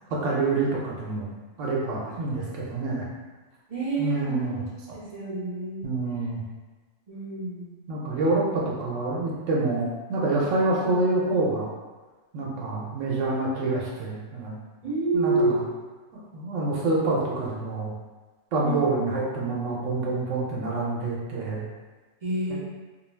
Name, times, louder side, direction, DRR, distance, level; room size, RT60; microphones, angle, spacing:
voice 1, 0.1-1.3 1.6-3.1 4.0-4.6 5.8-6.4 7.9-11.7 12.3-14.5 15.1-15.6 16.3-17.9 18.5-21.6 22.5-22.6, right 2 dB, 85° right, -5 dB, 0.9 m, -27 dB
voice 2, 3.7-4.6 4.9-5.9 7.1-7.7 14.8-15.7 18.6-18.8 22.2-22.6, right 3 dB, 50° right, -6 dB, 0.4 m, -28 dB
2.3 x 2.2 x 3.1 m, 1.3 s
omnidirectional pair, 1.3 m